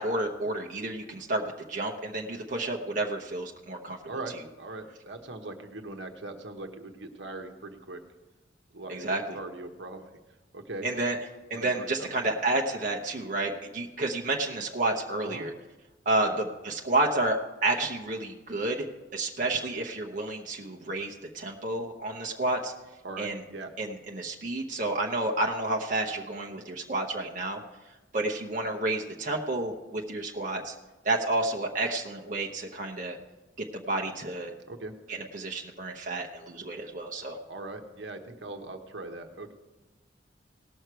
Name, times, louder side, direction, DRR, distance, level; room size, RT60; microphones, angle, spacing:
voice 1, 0.0-4.0 8.9-9.4 10.8-11.2 11.5-15.5 16.0-18.9 19.1-22.7 23.2-23.4 23.8-27.6 28.1-30.7 31.0-33.2 33.7-34.5 35.1-37.4, right 2 dB, 45° right, 0 dB, 0.9 m, -30 dB
voice 2, 4.1-8.0 8.7-10.1 10.5-10.8 11.5-12.3 15.2-15.4 16.2-16.4 23.0-23.7 34.7-34.9 37.5-39.5, right 2 dB, 70° right, 5 dB, 1.1 m, -40 dB
18.0 x 6.5 x 4.6 m, 1.1 s
head